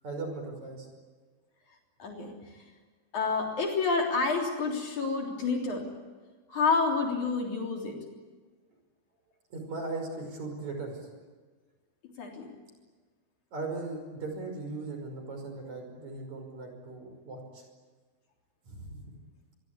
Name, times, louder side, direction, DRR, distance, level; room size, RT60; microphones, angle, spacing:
voice 1, 0.0-0.9 9.5-11.0 13.5-17.6 18.6-19.0, right 3 dB, 50° right, 4 dB, 6.7 m, -38 dB
voice 2, 2.0-2.3 3.1-5.9 6.5-8.0 12.2-12.5, left 4 dB, 55° left, 1 dB, 4.8 m, -29 dB
26.0 x 22.5 x 9.9 m, 1.4 s
omnidirectional pair, 4.3 m